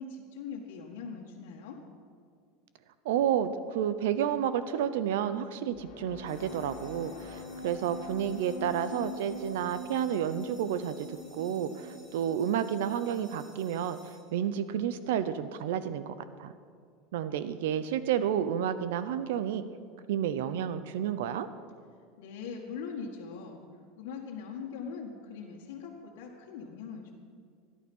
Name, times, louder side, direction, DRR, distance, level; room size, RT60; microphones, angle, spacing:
voice 1, 0.0-1.8 22.2-23.6 24.0-27.1, left 5 dB, 75° left, -1 dB, 1.7 m, -41 dB
voice 2, 3.0-16.5 17.1-19.6 20.1-21.5, right 9 dB, 80° right, 13 dB, 0.7 m, -31 dB
sound 1, 5.7-13.3, left 2 dB, 60° left, 2.1 m, -44 dB
sound 2, 6.2-14.9, right 1 dB, 15° right, 5.0 m, -58 dB
17.5 x 11.5 x 5.5 m, 2.1 s
supercardioid pair, 170°, 0 cm